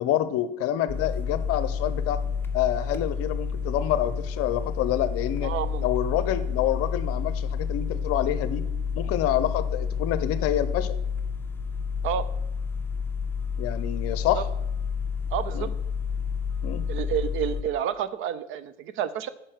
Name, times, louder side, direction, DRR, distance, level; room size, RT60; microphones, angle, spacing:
voice 1, 0.0-2.2 2.5-5.5 5.8-8.6 8.9-11.0 13.6-14.5 15.5-15.7 16.6-16.8, left 12 dB, 45° left, 13 dB, 0.8 m, -27 dB
sound 1, 0.9-17.6, left 6 dB, 5° left, 0.8 m, -30 dB
voice 2, 5.4-5.9 12.0-12.3 14.3-14.4 15.3-15.7 16.9-19.3, right 9 dB, 35° right, 14 dB, 0.5 m, -29 dB
9.9 x 4.4 x 6.4 m, 0.87 s
hypercardioid pair, 80°, 34 cm